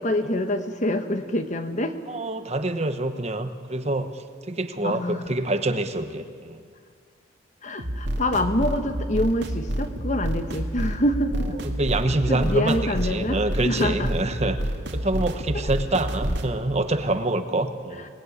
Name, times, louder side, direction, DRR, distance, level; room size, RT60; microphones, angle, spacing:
voice 1, 0.0-2.0 4.8-5.4 7.6-11.6 12.3-14.1, left 1 dB, 40° left, 7 dB, 1.3 m, -26 dB
voice 2, 2.1-6.6 11.6-12.8 13.1-14.6 14.9-18.1, right 2 dB, 35° right, 8 dB, 1.1 m, -26 dB
sound 1, 7.8-16.5, right 1 dB, 60° right, 2.1 m, -29 dB
25.0 x 19.5 x 9.8 m, 2.3 s
head